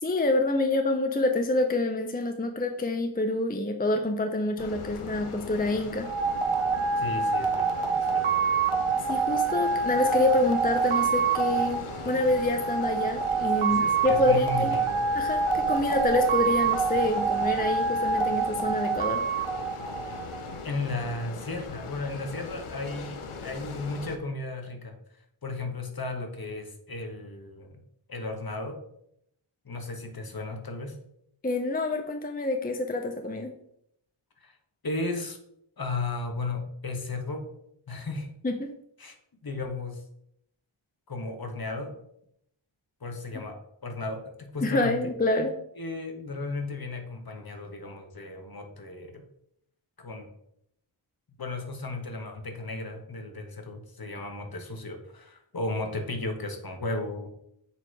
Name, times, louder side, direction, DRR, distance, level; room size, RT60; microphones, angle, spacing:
voice 1, 0.0-6.1 9.0-14.8 15.1-19.2 31.4-33.5 38.4-38.7 44.6-45.5, left 2 dB, 20° left, 5 dB, 0.5 m, -27 dB
sound 1, 4.6-24.2, left 4 dB, 80° left, 0.8 m, -40 dB
sound 2, 6.0-20.5, right 5 dB, 80° right, 0.9 m, -26 dB
voice 2, 7.0-8.4 13.7-15.1 20.6-25.0 25.4-27.8 28.1-28.8 29.6-31.0 34.4-34.6 34.8-35.4 35.8-37.5 37.9-38.3 39.0-39.2 39.4-40.0 41.1-41.9 43.0-45.0 45.8-49.3 50.0-50.3 51.4-57.3, left 2 dB, 45° left, 4 dB, 1.2 m, -35 dB
7.0 x 2.9 x 4.7 m, 0.73 s
wide cardioid pair, 55°, 49 cm